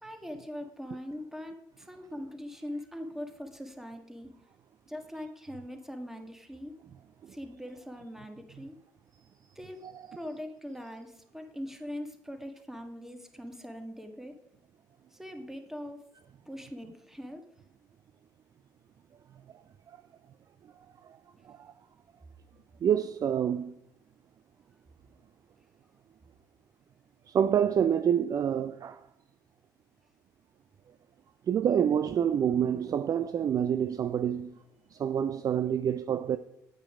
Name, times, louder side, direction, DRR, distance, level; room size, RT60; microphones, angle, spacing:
voice 1, 0.0-4.3 4.9-6.7 7.3-8.8 9.5-9.8 10.1-14.3 15.1-16.0 16.5-17.4, equal, 5° right, 1.7 m, -41 dB
voice 2, 22.8-23.8 27.3-29.1 31.5-34.6 34.9-36.4, right 8 dB, 40° right, 0.4 m, -27 dB
8.8 x 8.7 x 4.9 m
figure-of-eight pair, 50°, 10 cm